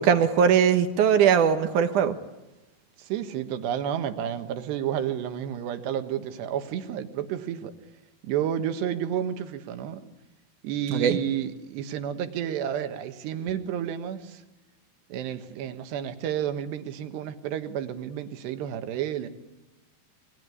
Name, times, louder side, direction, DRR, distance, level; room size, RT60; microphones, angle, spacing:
voice 1, 0.0-2.2 10.9-11.2, right 7 dB, 65° right, 9 dB, 2.1 m, -20 dB
voice 2, 3.0-7.7 8.2-10.1 10.6-14.4 15.1-19.3, right 9 dB, 80° right, 9 dB, 3.6 m, -31 dB
27.5 x 22.0 x 9.8 m, 0.99 s
omnidirectional pair, 4.8 m